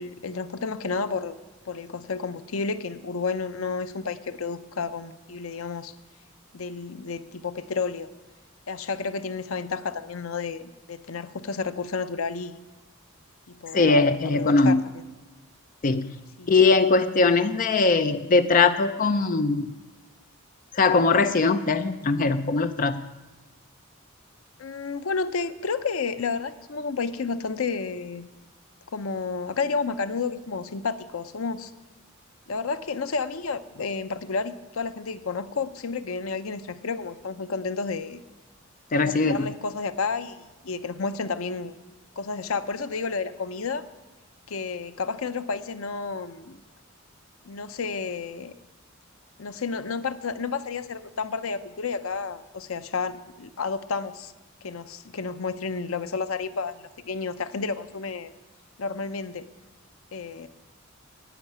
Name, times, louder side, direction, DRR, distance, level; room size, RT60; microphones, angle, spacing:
voice 1, 0.0-1.4 1.7-5.9 6.5-8.1 8.7-12.6 13.5-13.9 14.2-14.8 16.4-16.5 24.6-28.3 28.9-31.7 32.5-38.2 39.0-41.8 42.2-43.8 44.5-46.6 47.4-48.5 49.4-54.3 54.6-58.3 58.8-59.5 60.1-60.5, left 4 dB, 80° left, 12 dB, 0.7 m, -31 dB
voice 2, 13.7-14.8 15.8-16.2 16.5-19.7 20.7-23.1 38.9-39.5, left 3 dB, 40° left, 10 dB, 0.5 m, -21 dB
10.5 x 9.0 x 9.3 m, 1.2 s
head